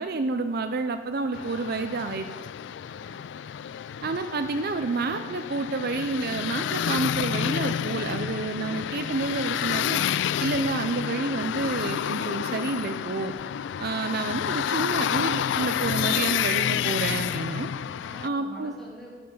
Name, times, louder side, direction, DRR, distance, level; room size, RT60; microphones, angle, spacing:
voice 1, 0.0-2.3 4.0-10.0 10.4-13.3 13.8-17.7 18.2-18.7, right 3 dB, 50° right, 8 dB, 0.5 m, -29 dB
sound 1, 1.3-18.3, left 9 dB, 60° left, 0.3 m, -29 dB
voice 2, 2.8-3.3 17.9-19.2, equal, ahead, -5 dB, 3.1 m, -46 dB
15.0 x 7.9 x 5.5 m, 1.5 s
head